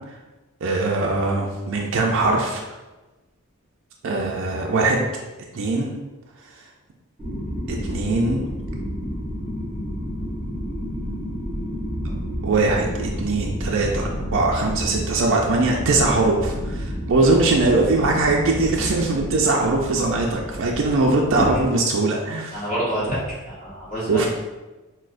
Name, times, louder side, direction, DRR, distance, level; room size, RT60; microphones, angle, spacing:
voice 1, 0.6-2.6 4.0-5.1 5.5-5.9 7.7-8.5 12.4-22.6 24.1-24.3, right 3 dB, 60° right, 0 dB, 0.4 m, -21 dB
sound 1, 7.2-21.6, equal, 5° right, 1.2 m, -30 dB
voice 2, 17.3-17.6 21.4-21.6 22.5-24.3, equal, 35° left, -10 dB, 1.2 m, -27 dB
6.0 x 2.1 x 2.5 m, 1.1 s
head